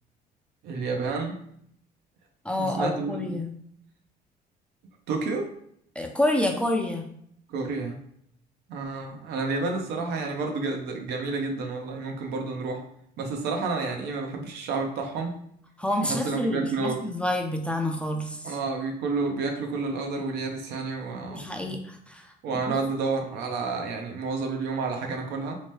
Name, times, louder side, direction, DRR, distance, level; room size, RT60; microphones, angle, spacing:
voice 1, 0.6-1.4 2.5-3.4 5.1-5.5 7.5-8.0 8.7-12.8 13.2-15.3 16.0-17.0 18.4-21.8 22.4-25.6, right 3 dB, 80° right, 3 dB, 0.6 m, -30 dB
voice 2, 2.4-3.5 6.0-7.0 15.8-18.5 21.2-22.8, left 1 dB, 5° left, 2 dB, 0.3 m, -28 dB
2.8 x 2.1 x 3.1 m, 0.69 s
cardioid pair, 110°, 17 cm